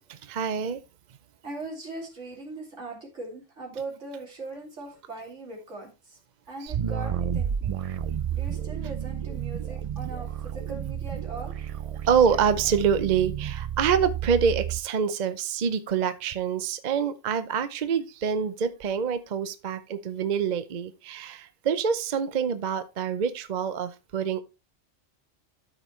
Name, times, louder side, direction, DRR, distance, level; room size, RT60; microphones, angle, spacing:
voice 1, 0.3-0.8 6.6-6.7 12.1-24.4, right 7 dB, 45° right, 0.7 m, -26 dB
voice 2, 1.4-6.2 6.5-7.7 8.3-11.5, right 3 dB, 85° right, 3.0 m, -40 dB
sound 1, 6.7-14.8, right 9 dB, 65° right, 0.3 m, -31 dB
13.0 x 5.2 x 3.1 m
omnidirectional pair, 1.2 m